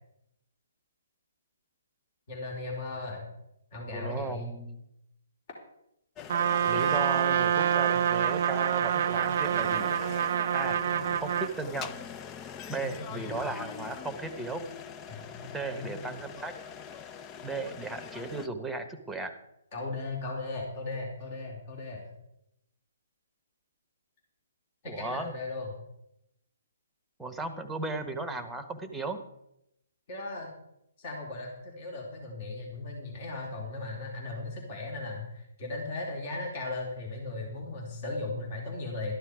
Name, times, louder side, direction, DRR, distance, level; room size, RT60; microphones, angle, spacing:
voice 1, 2.3-3.2 3.7-4.5 10.8-11.1 12.8-13.5 15.1-15.9 19.7-22.1 24.8-25.7 30.1-30.5 31.0-39.1, left 2 dB, 40° left, -1 dB, 4.0 m, -37 dB
voice 2, 3.9-4.8 6.7-9.9 10.5-10.8 11.2-11.9 12.7-14.6 15.5-16.5 17.4-19.4 24.9-25.3 27.2-29.2, right 3 dB, 5° right, 7 dB, 1.3 m, -36 dB
sound 1, 6.2-18.5, left 8 dB, 20° left, 0.6 m, -43 dB
Trumpet, 6.3-11.6, right 9 dB, 50° right, 0.4 m, -27 dB
13.5 x 11.5 x 5.1 m, 0.81 s
figure-of-eight pair, 135°, 0 cm